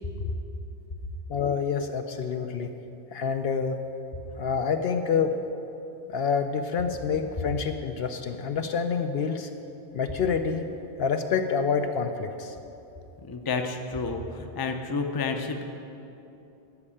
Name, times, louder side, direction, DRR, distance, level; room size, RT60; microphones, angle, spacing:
voice 1, 1.3-2.7 3.1-3.8 4.4-5.3 6.1-9.5 9.9-10.7 11.0-12.5, left 6 dB, 65° left, 7 dB, 0.7 m, -27 dB
voice 2, 13.2-15.6, left 4 dB, 25° left, 5 dB, 0.5 m, -30 dB
12.0 x 5.4 x 8.6 m, 2.9 s
omnidirectional pair, 1.2 m